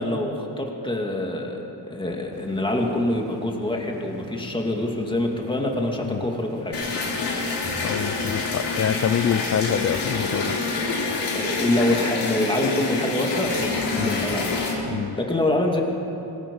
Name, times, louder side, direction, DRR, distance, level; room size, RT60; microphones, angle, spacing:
voice 1, 0.0-6.8 11.3-14.6 15.2-15.8, left 1 dB, 10° left, 0 dB, 2.5 m, -25 dB
sound 1, 2.3-12.0, right 1 dB, 60° right, 3.6 m, -45 dB
sound 2, 6.7-14.7, left 3 dB, 75° left, 5.2 m, -27 dB
voice 2, 7.8-10.6 14.0-14.3 14.9-15.2, left 8 dB, 40° left, 17 dB, 0.4 m, -26 dB
25.5 x 20.0 x 5.6 m, 2.9 s
wide cardioid pair, 150°, 42 cm